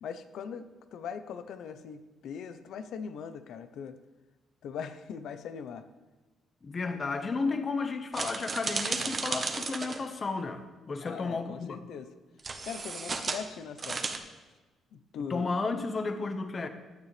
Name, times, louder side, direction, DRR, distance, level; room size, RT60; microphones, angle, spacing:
voice 1, 0.0-4.0 4.6-5.8 11.0-12.1 12.6-14.0 14.9-15.5, left 7 dB, 75° left, 0.8 m, -40 dB
voice 2, 6.6-11.8 15.3-16.7, left 4 dB, 35° left, 1.2 m, -33 dB
sound 1, 8.1-10.0 12.4-13.4 13.8-14.2, right 4 dB, 40° right, 1.2 m, -33 dB
16.0 x 9.7 x 3.4 m
cardioid pair, 90°, 0 cm